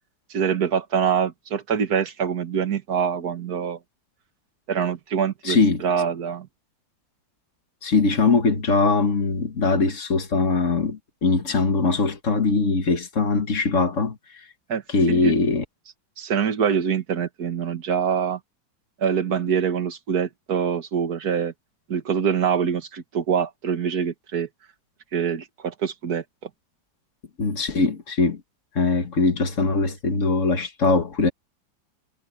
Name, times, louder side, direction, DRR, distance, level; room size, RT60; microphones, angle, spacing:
voice 1, 0.3-3.8 4.7-6.5 14.7-14.8 15.1-15.3 16.2-18.4 19.0-21.5 21.9-24.5 25.1-26.5, right 7 dB, 50° right, 2.0 m, -24 dB
voice 2, 5.4-5.8 7.8-14.2 14.9-15.6 27.4-28.4 28.8-31.3, left 3 dB, 40° left, 1.9 m, -21 dB
omnidirectional pair, 2.1 m